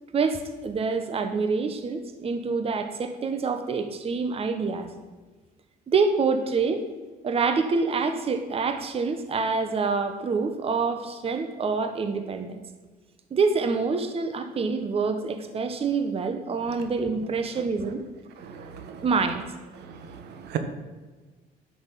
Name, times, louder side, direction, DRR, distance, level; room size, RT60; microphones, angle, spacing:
voice 1, 0.1-4.9 5.9-6.8 7.2-12.6 13.3-18.0 19.0-19.4, right 4 dB, 35° right, 7 dB, 1.2 m, -26 dB
voice 2, 18.4-19.1 19.8-20.6, right 10 dB, 80° right, 8 dB, 1.5 m, -37 dB
10.5 x 6.1 x 7.5 m, 1.3 s
cardioid pair, 110°, 17 cm